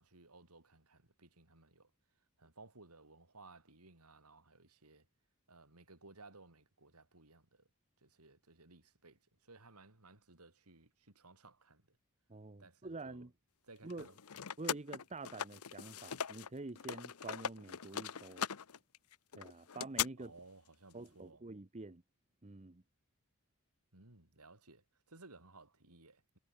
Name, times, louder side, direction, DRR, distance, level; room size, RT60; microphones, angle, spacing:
voice 1, 0.0-1.9 2.4-5.1 5.5-7.7 8.0-12.0 12.6-13.3 13.6-14.4 20.2-21.4 23.9-26.4, right 3 dB, 85° right, 4.6 m, -60 dB
voice 2, 12.3-13.3 13.8-14.1 14.6-18.5 19.3-20.3 20.9-22.0 22.4-22.8, right 2 dB, 30° right, 1.0 m, -47 dB
sound 1, 13.9-16.5 16.8-20.1, left 8 dB, 80° left, 0.9 m, -40 dB
head